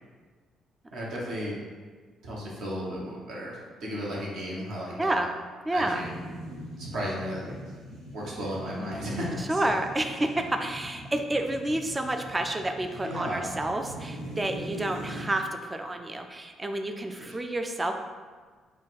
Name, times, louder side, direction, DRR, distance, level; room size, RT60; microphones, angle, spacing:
voice 1, 0.9-1.5 2.2-5.3 5.7-6.1 6.8-7.7 8.1-9.6 10.3-10.4 13.0-13.5 17.2-17.3, equal, 60° right, -5 dB, 1.0 m, -34 dB
voice 2, 5.0-5.3 5.7-6.0 9.5-17.9, right 1 dB, 20° right, 5 dB, 0.4 m, -29 dB
sound 1, 5.8-15.2, right 1 dB, 75° right, 1.3 m, -42 dB
4.0 x 2.3 x 4.1 m, 1.5 s
figure-of-eight pair, 45°, 0 cm